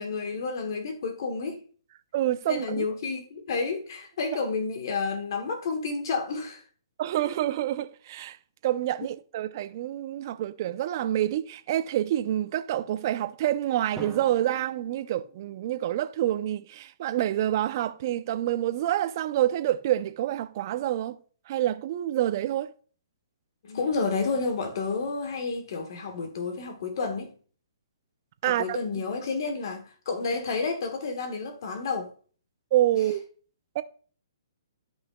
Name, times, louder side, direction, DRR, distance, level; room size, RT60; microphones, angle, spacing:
voice 1, 0.0-1.6 2.5-6.6 23.7-27.3 28.5-32.1, left 4 dB, 55° left, 1.5 m, -30 dB
voice 2, 2.1-2.8 4.2-4.4 7.0-8.4 8.6-21.2 21.5-22.7 28.4-28.8 32.7-33.2 33.7-33.8, right 12 dB, 45° right, 0.6 m, -27 dB
Drum, 14.0-16.1, right 4 dB, 5° right, 1.5 m, -44 dB
13.0 x 5.6 x 2.3 m
hypercardioid pair, 145°, 2 cm